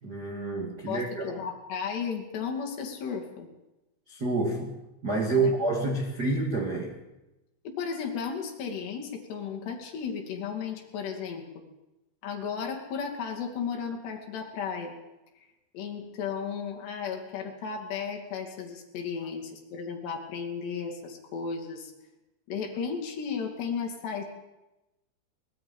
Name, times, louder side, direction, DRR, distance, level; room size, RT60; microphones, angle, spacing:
voice 1, 0.0-1.4 4.1-4.7 5.0-7.0, right 3 dB, 50° right, 2 dB, 1.2 m, -28 dB
voice 2, 0.9-3.5 5.3-5.5 7.8-11.4 12.2-14.9 15.7-21.9 22.5-24.2, left 6 dB, 60° left, 2 dB, 4.6 m, -34 dB
22.5 x 21.5 x 5.6 m, 0.97 s
omnidirectional pair, 5.6 m